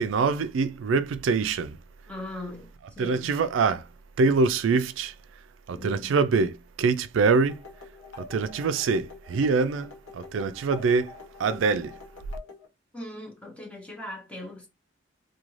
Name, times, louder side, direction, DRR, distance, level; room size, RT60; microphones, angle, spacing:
voice 1, 0.0-1.8 3.0-3.8 4.2-5.1 5.7-7.5 8.3-9.9 10.1-11.1 11.4-11.9, right 4 dB, 85° right, 0.4 m, -24 dB
voice 2, 2.1-3.5 5.7-6.2 12.9-14.7, left 1 dB, 5° left, 0.7 m, -40 dB
sound 1, 7.5-12.7, left 4 dB, 85° left, 1.0 m, -46 dB
2.5 x 2.2 x 3.0 m
head